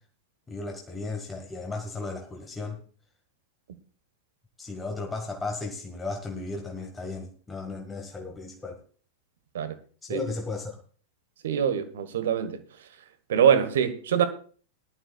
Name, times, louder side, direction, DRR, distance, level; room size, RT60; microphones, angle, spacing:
voice 1, 0.5-2.8 4.6-8.8 10.0-10.8, left 3 dB, 15° left, 1.8 m, -35 dB
voice 2, 11.4-12.6 13.3-14.2, right 8 dB, 60° right, 1.4 m, -23 dB
19.5 x 12.0 x 2.4 m
figure-of-eight pair, 90°, 0 cm